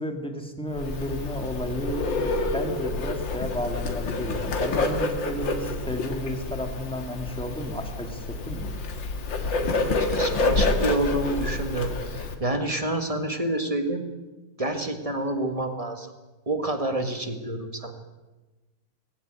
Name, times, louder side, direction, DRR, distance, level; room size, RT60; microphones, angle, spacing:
voice 1, 0.0-2.3 2.5-8.7, equal, 5° left, 4 dB, 2.2 m, -32 dB
Bird, 0.7-12.3, left 3 dB, 60° left, 2.5 m, -28 dB
voice 2, 9.3-14.0 14.6-16.1 16.4-17.9, right 1 dB, 20° right, 6 dB, 1.6 m, -28 dB
19.5 x 16.0 x 9.0 m, 1.2 s
omnidirectional pair, 2.3 m